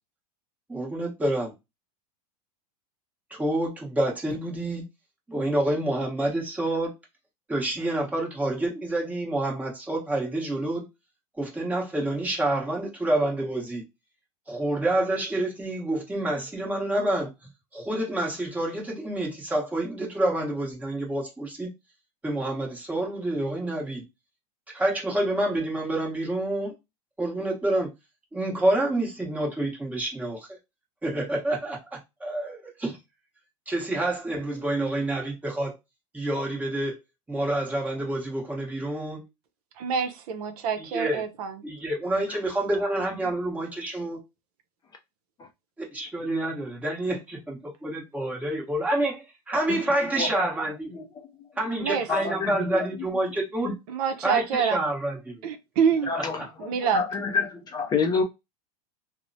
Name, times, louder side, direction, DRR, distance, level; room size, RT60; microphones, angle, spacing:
voice 1, 0.7-1.5 3.3-4.8 5.3-6.9 7.5-10.9 11.4-13.8 14.5-17.3 17.7-21.7 22.2-24.0 24.7-26.7 27.2-27.9 28.3-30.6 31.0-32.9 33.7-35.7 36.1-37.0 37.3-39.2 40.8-41.2 41.6-44.2 45.9-50.9 51.6-53.7 54.2-55.4, right 1 dB, 5° right, 0.9 m, -28 dB
voice 2, 39.8-41.6 51.8-52.1 53.9-54.8 55.4-56.1 56.6-57.0, right 6 dB, 70° right, 0.6 m, -26 dB
voice 3, 50.2-50.5 50.9-51.3 52.1-52.9 53.6-53.7 56.1-56.5 56.9-58.2, left 5 dB, 20° left, 0.4 m, -28 dB
3.0 x 2.0 x 2.6 m
supercardioid pair, 130°, 20 cm